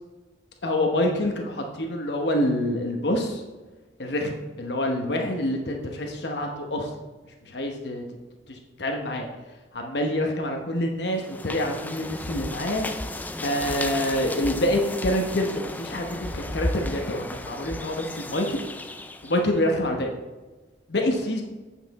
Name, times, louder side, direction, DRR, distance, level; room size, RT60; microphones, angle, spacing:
voice 1, 0.6-3.4 4.0-6.9 7.5-8.0 8.5-9.3 9.7-12.9 13.4-18.6 19.2-20.1 20.9-21.4, left 1 dB, 70° left, 2 dB, 1.0 m, -26 dB
sound 1, 11.1-19.5, left 1 dB, 10° left, 0.3 m, -34 dB
8.2 x 5.7 x 4.1 m, 1.2 s
head